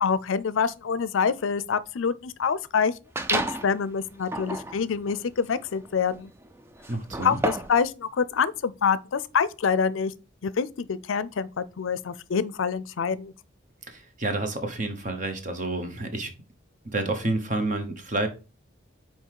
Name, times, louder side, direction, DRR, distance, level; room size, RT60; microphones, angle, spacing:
voice 1, 0.0-2.9 3.3-6.3 7.2-10.1 10.4-13.3, left 6 dB, 85° left, 0.5 m, -26 dB
sound 1, 3.1-3.7 4.2-7.8, right 2 dB, 10° right, 0.4 m, -31 dB
voice 2, 6.9-7.4 13.9-16.3 16.8-18.3, right 2 dB, 40° right, 1.1 m, -29 dB
5.6 x 4.5 x 4.6 m
head